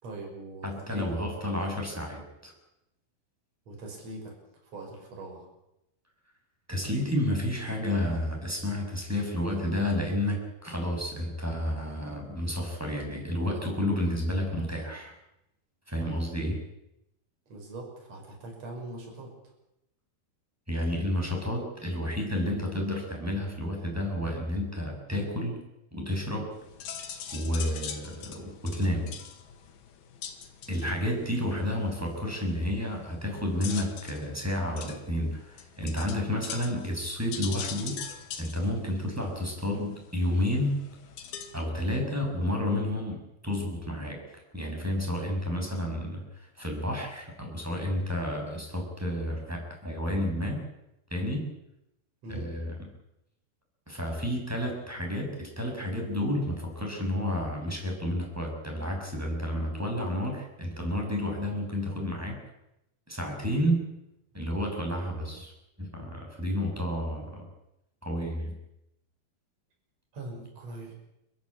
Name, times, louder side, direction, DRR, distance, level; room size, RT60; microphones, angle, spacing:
voice 1, 0.0-1.1 3.7-4.4 4.7-5.5 17.5-19.3 52.2-52.5 70.1-70.9, right 2 dB, 40° right, 1 dB, 7.1 m, -41 dB
voice 2, 0.6-2.5 6.7-15.1 15.9-16.6 20.7-25.6 25.9-26.5 27.3-29.2 30.7-38.1 38.4-40.8 41.5-50.6 51.1-51.5 52.3-52.7 53.9-62.4 63.1-63.9 64.3-65.5 65.8-67.5 68.0-68.6, left 1 dB, 5° right, 1 dB, 6.6 m, -31 dB
sound 1, 26.5-41.7, left 8 dB, 75° left, 3.8 m, -43 dB
30.0 x 13.5 x 8.8 m, 0.87 s
omnidirectional pair, 4.5 m